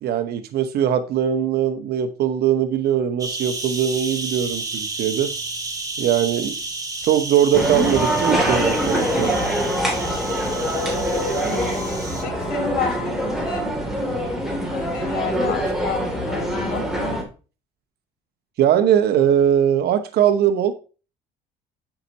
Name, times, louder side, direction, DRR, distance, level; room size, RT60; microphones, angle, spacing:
voice 1, 0.0-5.3 6.0-6.6 7.1-9.3 18.6-20.7, right 9 dB, 70° right, 1.0 m, -20 dB
sound 1, 3.2-12.2, right 2 dB, 20° right, 2.3 m, -32 dB
sound 2, 7.5-17.2, equal, ahead, 3.0 m, -24 dB
voice 2, 11.5-13.8 14.6-17.2, left 5 dB, 65° left, 2.6 m, -31 dB
9.1 x 5.8 x 4.2 m
cardioid pair, 110°, 17 cm